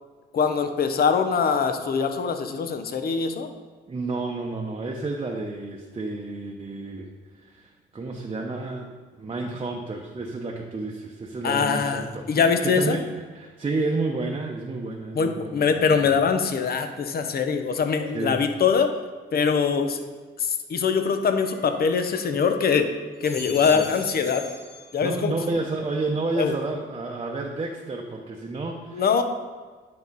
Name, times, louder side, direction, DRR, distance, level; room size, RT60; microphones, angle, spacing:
voice 1, 0.3-3.5 11.4-13.0 15.1-18.9 19.3-20.0 20.4-22.9 23.2-24.4 24.9-25.3 26.4-26.5 28.9-29.2, left 6 dB, 50° left, 7 dB, 0.9 m, -23 dB
voice 2, 3.9-7.1 7.3-16.1 18.1-18.4 23.7-23.8 25.0-29.2, right 3 dB, 25° right, 0 dB, 0.9 m, -31 dB
sound 1, 21.4-22.6 23.0-25.4 25.8-26.4, left 1 dB, ahead, 1.6 m, -43 dB
9.9 x 4.7 x 4.1 m, 1.5 s
cardioid pair, 90°, 20 cm